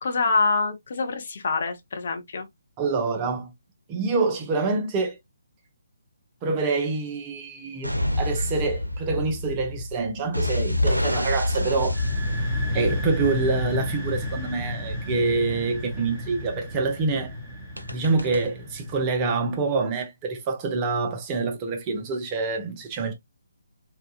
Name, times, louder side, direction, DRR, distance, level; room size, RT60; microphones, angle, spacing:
voice 1, 0.0-2.5, left 4 dB, 50° left, 0.6 m, -25 dB
voice 2, 2.8-3.5 3.9-5.2 6.4-12.0 12.7-17.3 17.9-23.1, right 4 dB, 20° right, 0.5 m, -26 dB
sound 1, 7.8-14.2 17.8-18.4, left 1 dB, 90° right, 0.5 m, -27 dB
sound 2, 11.8-19.4, left 1 dB, ahead, 1.2 m, -32 dB
2.8 x 2.3 x 2.3 m
figure-of-eight pair, 140°, 0 cm